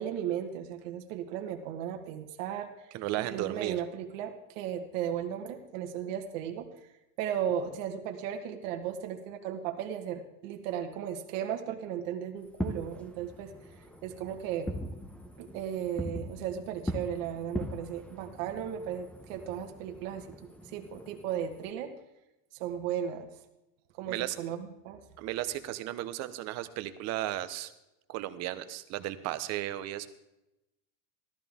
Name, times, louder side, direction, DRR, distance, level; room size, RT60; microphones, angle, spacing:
voice 1, 0.0-2.7 3.2-6.9 7.2-14.7 15.4-21.9 22.5-23.3 24.0-25.0, right 9 dB, 75° right, 4 dB, 1.4 m, -36 dB
voice 2, 2.9-3.8 24.1-24.3 25.2-27.7 28.1-30.1, right 14 dB, 40° right, 12 dB, 0.8 m, -34 dB
Fireworks, 12.4-21.7, equal, 5° left, 0.7 m, -41 dB
14.5 x 13.5 x 3.5 m, 0.93 s
cardioid pair, 160°, 39 cm